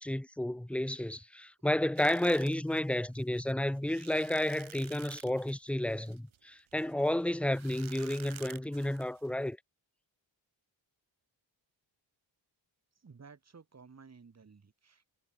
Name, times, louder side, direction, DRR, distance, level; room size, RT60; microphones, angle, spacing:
voice 1, 0.0-9.6, left 1 dB, 5° left, 0.8 m, -31 dB
sound 1, 2.0-9.5, right 10 dB, 75° right, 2.2 m, -52 dB
voice 2, 13.0-15.1, right 5 dB, 35° right, 5.4 m, -55 dB
wide cardioid pair, 170°, 48 cm